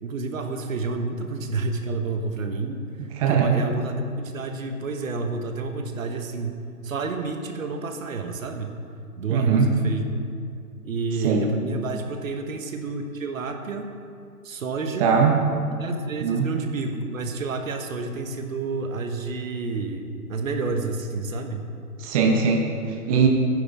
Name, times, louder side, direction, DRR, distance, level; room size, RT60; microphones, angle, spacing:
voice 1, 0.0-8.7 9.2-10.0 10.8-13.9 14.4-15.1 15.7-21.7, right 3 dB, 60° right, 5 dB, 1.4 m, -30 dB
voice 2, 3.1-3.6 9.3-9.7 11.2-11.4 15.0-15.4 16.2-16.5 22.0-23.3, right 6 dB, 25° right, 1 dB, 0.9 m, -21 dB
14.0 x 9.6 x 3.6 m, 2.5 s
figure-of-eight pair, 140°, 46 cm